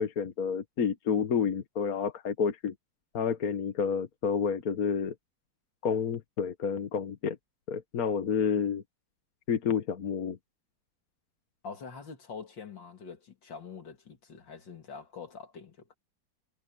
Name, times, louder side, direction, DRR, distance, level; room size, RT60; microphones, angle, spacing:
voice 1, 0.0-2.7 3.1-5.1 5.8-7.4 7.7-8.8 9.5-10.4, left 6 dB, 55° left, 1.7 m, -29 dB
voice 2, 11.6-15.9, left 5 dB, 75° left, 3.1 m, -45 dB
omnidirectional pair, 2.0 m